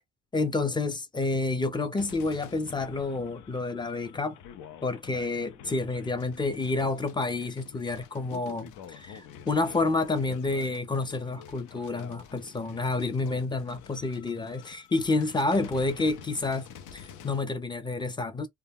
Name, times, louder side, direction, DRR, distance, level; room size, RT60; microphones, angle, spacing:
voice 1, 0.3-4.4 4.8-18.5, left 3 dB, 15° left, 0.4 m, -29 dB
sound 1, 2.0-17.4, left 8 dB, 85° left, 0.5 m, -48 dB
2.2 x 2.0 x 3.4 m
cardioid pair, 90°, 30 cm